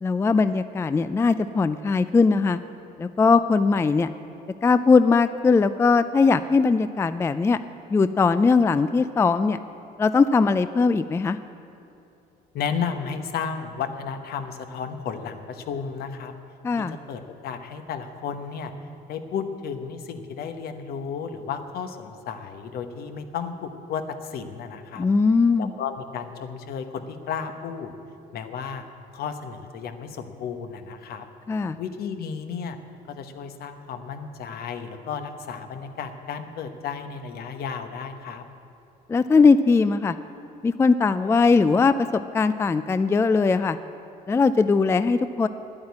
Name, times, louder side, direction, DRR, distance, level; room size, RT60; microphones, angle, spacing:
voice 1, 0.0-2.6 3.0-4.1 4.6-7.6 7.9-9.6 10.0-11.4 16.6-17.0 25.0-25.7 31.5-31.8 39.1-40.2 40.6-43.8 44.3-45.5, left 4 dB, 15° left, 12 dB, 0.3 m, -20 dB
voice 2, 12.5-16.3 16.8-18.7 19.1-25.1 25.6-27.9 28.3-28.8 29.1-31.3 31.8-32.8 33.1-38.4, left 6 dB, 65° left, 8 dB, 1.1 m, -33 dB
10.5 x 8.8 x 9.6 m, 2.7 s
cardioid pair, 110°, 17 cm